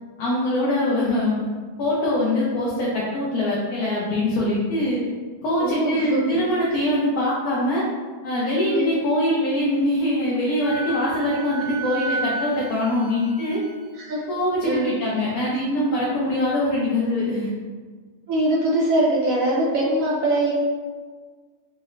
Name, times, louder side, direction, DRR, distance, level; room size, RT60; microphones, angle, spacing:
voice 1, 0.2-1.4 1.8-5.0 5.4-7.9 8.2-13.6 14.3-17.5, left 1 dB, 70° left, -6 dB, 1.1 m, -23 dB
voice 2, 5.6-6.4 8.7-8.9 13.9-14.3 14.6-14.9 18.3-20.5, right 1 dB, 65° right, -3 dB, 0.9 m, -22 dB
Wind instrument woodwind instrument, 10.6-14.1, right 3 dB, 50° left, 0.3 m, -32 dB
4.0 x 2.1 x 3.7 m, 1.5 s
omnidirectional pair, 1.8 m